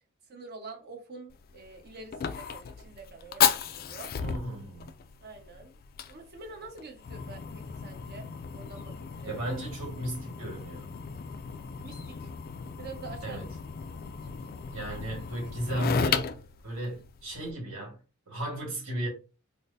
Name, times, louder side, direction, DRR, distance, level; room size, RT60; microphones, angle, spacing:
voice 1, 0.3-4.1 5.2-5.8 6.1-9.4 11.8-12.3 12.8-13.4 14.2-14.5 14.9-15.0, right 3 dB, 50° right, 0.9 m, -46 dB
Fire, 1.3-17.5, left 7 dB, 45° left, 0.3 m, -34 dB
voice 2, 4.2-4.9 9.3-10.9 13.2-13.4 14.7-16.4 16.6-18.0 18.3-19.1, right 1 dB, 65° right, 2.0 m, -34 dB
3.4 x 2.1 x 4.0 m
head